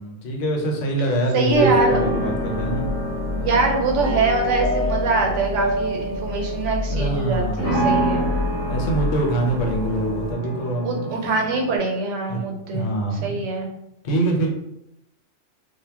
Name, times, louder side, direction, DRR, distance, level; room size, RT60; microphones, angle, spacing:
voice 1, 0.0-2.9 3.3-3.7 6.9-7.8 8.7-11.0 12.3-12.4 12.7-13.4 14.0-14.5, right 2 dB, 85° left, 2 dB, 1.0 m, -24 dB
voice 2, 1.3-2.0 3.3-8.3 10.8-12.9 13.2-13.7, right 3 dB, 80° right, 1 dB, 0.9 m, -23 dB
sound 1, 1.5-10.3, left 2 dB, 60° left, 0.7 m, -30 dB
sound 2, 1.5-11.8, right 1 dB, 15° left, 0.8 m, -27 dB
2.2 x 2.0 x 3.3 m, 0.82 s
omnidirectional pair, 1.2 m